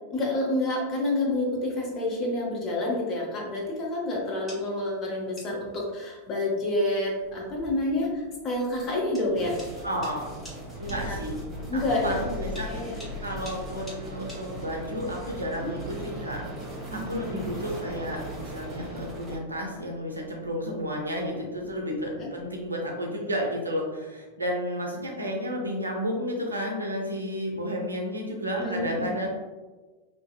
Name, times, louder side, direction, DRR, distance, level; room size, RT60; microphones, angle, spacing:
voice 1, 0.1-9.6 11.0-11.2 11.7-12.2 12.6-13.0 16.9-17.5 22.2-22.3 28.6-29.2, left 1 dB, 30° left, -2 dB, 0.7 m, -28 dB
sound 1, 4.2-15.0, equal, 10° left, 1.4 m, -50 dB
Thunder, 7.1-22.8, left 2 dB, 75° left, 1.1 m, -44 dB
sound 2, 9.3-19.4, right 1 dB, 15° right, 0.9 m, -39 dB
voice 2, 9.8-10.3 10.8-11.4 11.7-12.7 13.2-16.4 16.9-29.3, equal, 80° right, 0 dB, 0.5 m, -32 dB
2.7 x 2.5 x 2.2 m, 1.3 s
figure-of-eight pair, 90°, 0 cm